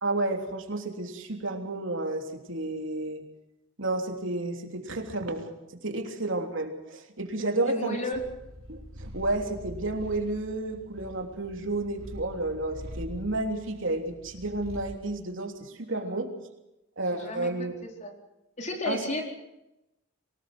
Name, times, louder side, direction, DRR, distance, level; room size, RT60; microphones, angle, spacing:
voice 1, 0.0-3.2 3.8-5.5 5.8-8.0 8.7-16.3 17.0-17.7 18.9-19.0, right 2 dB, 70° right, 4 dB, 3.3 m, -31 dB
voice 2, 7.6-8.2 15.8-16.2 17.1-17.5 17.8-18.1 18.6-19.2, left 1 dB, 35° left, 2 dB, 4.4 m, -34 dB
Purr, 8.1-15.1, equal, 90° right, 3.7 m, -44 dB
24.0 x 19.5 x 6.2 m, 0.91 s
head